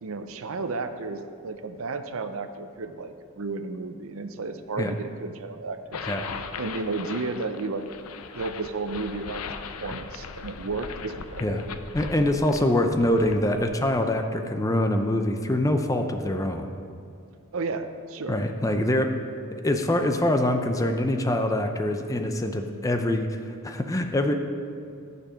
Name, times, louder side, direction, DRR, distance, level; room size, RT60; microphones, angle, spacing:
voice 1, 0.0-6.1 6.6-7.9 8.3-11.4 17.5-18.4, right 3 dB, 65° right, 9 dB, 0.6 m, -33 dB
sound 1, 5.9-14.0, left 5 dB, 85° left, 0.5 m, -39 dB
voice 2, 11.9-16.7 18.3-19.1 19.6-23.3 23.6-24.3, left 1 dB, 15° left, 5 dB, 0.5 m, -24 dB
12.0 x 6.9 x 5.1 m, 2.4 s
head